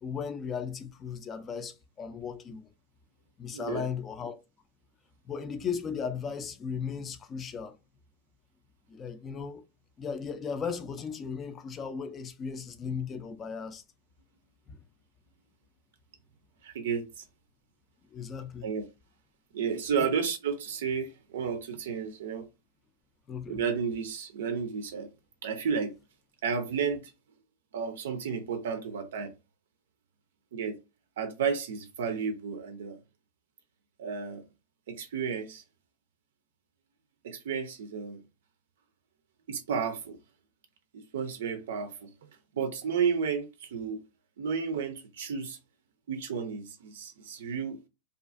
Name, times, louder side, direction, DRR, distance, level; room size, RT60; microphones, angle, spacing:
voice 1, 0.0-2.7 3.4-4.4 5.3-7.8 8.9-9.6 10.0-13.8 14.7-14.8 18.1-18.7 20.0-20.1 23.3-23.6, left 6 dB, 20° left, 0.3 m, -36 dB
voice 2, 3.5-3.9 16.6-17.2 18.6-18.9 19.5-22.5 23.5-25.1 25.4-25.9 26.4-27.1 27.7-29.3 30.5-30.8 31.2-33.0 34.0-34.4 34.9-35.6 37.2-38.2 39.5-40.2 40.9-42.1 42.5-44.0 44.4-45.6 46.1-47.9, right 6 dB, 85° right, 0.4 m, -32 dB
2.4 x 2.4 x 2.4 m
supercardioid pair, 150°, 0 cm